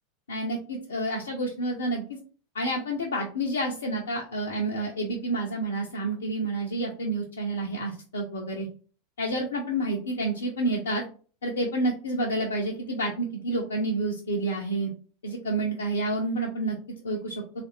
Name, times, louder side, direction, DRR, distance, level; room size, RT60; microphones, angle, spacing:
voice 1, 0.3-2.0 2.5-8.7 9.2-11.0 11.4-14.9 15.2-16.8 17.0-17.4, right 1 dB, 80° left, -1 dB, 0.6 m, -29 dB
3.1 x 2.5 x 3.0 m, 0.39 s
hypercardioid pair, 90°, 0 cm